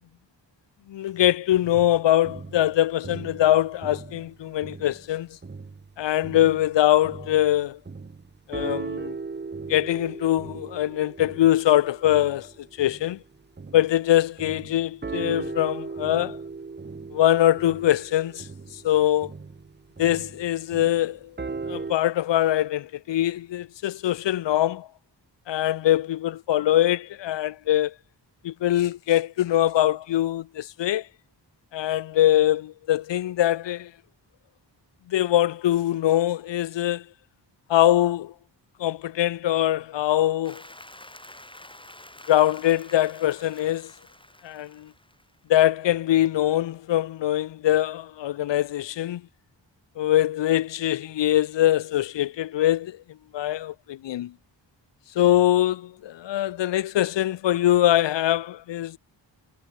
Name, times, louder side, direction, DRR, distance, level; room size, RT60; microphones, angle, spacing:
voice 1, 0.9-5.3 6.0-7.8 8.5-9.1 9.7-13.2 13.7-16.4 17.1-18.5 18.7-19.3 20.0-21.3 21.7-24.9 25.5-27.9 28.4-31.1 31.7-33.9 35.1-37.0 37.7-38.3 38.8-40.6 42.3-43.9 44.4-44.9 45.5-49.2 50.0-53.0 53.3-54.3 55.2-59.0, left 13 dB, 75° left, 0.6 m, -23 dB
sound 1, 2.2-5.1 5.4-14.0 14.4-21.9, right 4 dB, 25° right, 0.9 m, -38 dB
Applause, 40.4-45.5, left 1 dB, 10° left, 5.1 m, -48 dB
wide cardioid pair, 100°, 44 cm